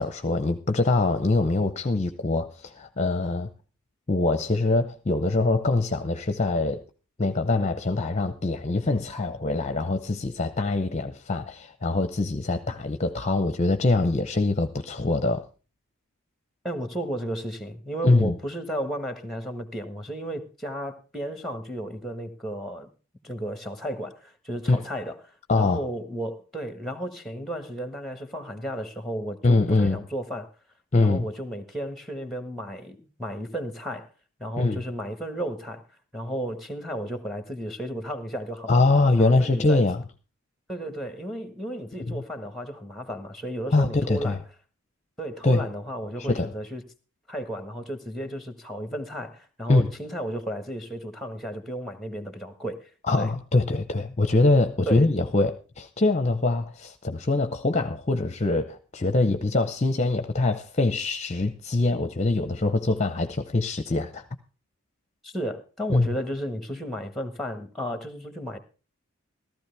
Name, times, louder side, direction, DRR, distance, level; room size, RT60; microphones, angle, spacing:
voice 1, 0.0-3.5 4.1-6.8 7.2-15.4 18.0-18.3 24.7-24.8 25.5-25.8 29.4-30.0 30.9-31.2 34.6-34.8 38.7-40.0 42.0-42.2 43.7-44.4 45.4-45.6 46.3-46.5 49.7-49.9 53.1-64.2 65.9-66.1, left 2 dB, 30° left, 0.7 m, -23 dB
voice 2, 16.6-22.9 23.2-30.5 31.0-34.1 34.4-35.8 36.1-38.8 39.2-39.8 40.7-44.4 45.2-46.8 47.3-52.9 53.2-53.3 54.9-55.1 65.2-68.6, right 1 dB, ahead, 1.5 m, -33 dB
15.0 x 13.5 x 3.4 m
head